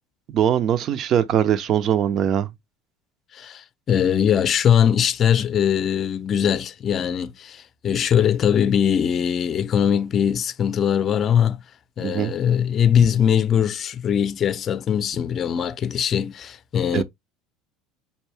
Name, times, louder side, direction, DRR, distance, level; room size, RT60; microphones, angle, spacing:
voice 1, 0.3-2.5 12.0-12.3 16.9-17.0, right 9 dB, 50° right, 0.6 m, -21 dB
voice 2, 3.3-11.6 12.0-17.0, left 8 dB, 40° left, 0.6 m, -21 dB
5.5 x 2.6 x 3.3 m
supercardioid pair, 110°, 0 cm